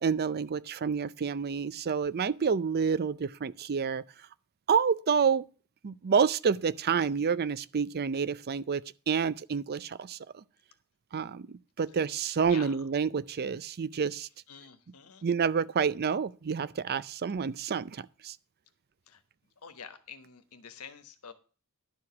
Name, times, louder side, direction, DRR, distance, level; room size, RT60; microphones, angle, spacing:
voice 1, 0.0-4.0 4.7-5.4 5.8-8.8 9.1-10.2 11.1-14.3 15.2-18.3, right 6 dB, 45° right, 0.5 m, -28 dB
voice 2, 12.5-12.9 14.5-15.3 19.1-19.2 19.6-21.3, left 6 dB, 80° left, 1.3 m, -47 dB
11.5 x 4.8 x 7.0 m
head